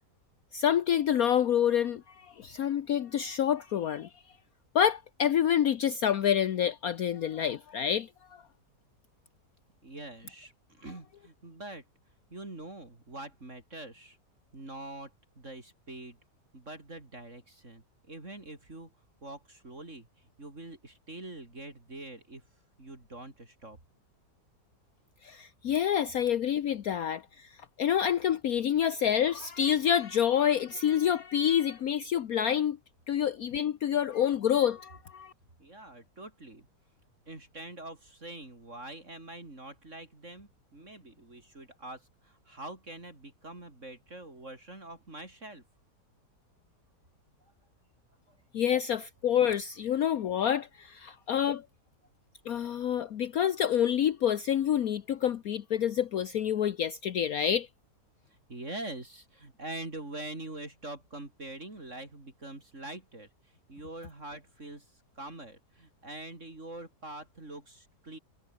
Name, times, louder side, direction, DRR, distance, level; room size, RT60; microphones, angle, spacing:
voice 1, 0.5-4.1 4.7-8.1 25.2-27.5 27.8-32.8 33.1-35.3 48.5-51.6 52.5-57.7, left 9 dB, 60° left, 1.3 m, -27 dB
voice 2, 9.8-11.8 12.3-14.2 14.5-16.2 16.5-18.9 19.2-22.4 22.8-23.8 35.6-36.7 37.3-45.6 48.3-48.4 51.1-51.2 58.3-68.2, right 2 dB, 45° right, 4.9 m, -44 dB
omnidirectional pair, 1.8 m